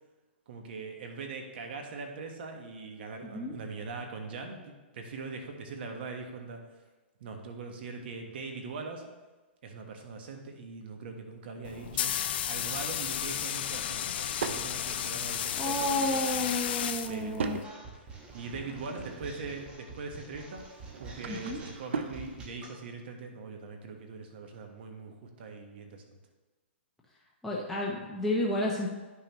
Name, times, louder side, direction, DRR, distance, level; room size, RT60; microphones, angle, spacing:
voice 1, 0.5-6.6 7.2-9.0 9.6-12.1 12.5-16.6 17.0-17.7 18.3-26.2, right 4 dB, 55° right, 4 dB, 1.2 m, -41 dB
voice 2, 3.2-3.6 15.6-17.6 21.3-21.6 27.4-28.9, left 1 dB, 5° left, -4 dB, 0.7 m, -31 dB
sound 1, 11.6-17.6, left 10 dB, 55° left, 0.5 m, -33 dB
Drawer open or close / Wood, 13.7-14.7 16.4-17.7 18.2-19.4 20.7-22.2, right 5 dB, 75° right, 0.6 m, -39 dB
sound 2, 17.6-22.8, right 3 dB, 15° right, 1.0 m, -47 dB
10.0 x 5.7 x 3.0 m, 1.2 s
hypercardioid pair, 150°, 7 cm